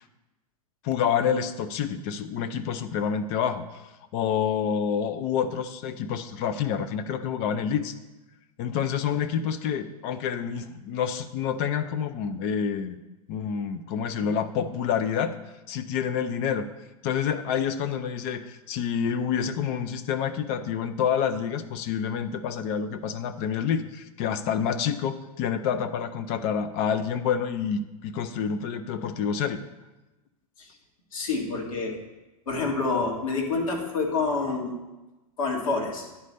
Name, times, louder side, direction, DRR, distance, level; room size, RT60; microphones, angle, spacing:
voice 1, 0.8-3.6 4.1-7.9 8.6-13.0 13.3-15.4 15.7-16.7 17.0-29.6, left 7 dB, 40° left, 9 dB, 0.6 m, -28 dB
voice 2, 31.1-32.0 32.5-34.8 35.4-36.1, left 3 dB, 65° left, -1 dB, 1.9 m, -27 dB
9.9 x 4.1 x 6.6 m, 1.1 s
figure-of-eight pair, 95°, 19 cm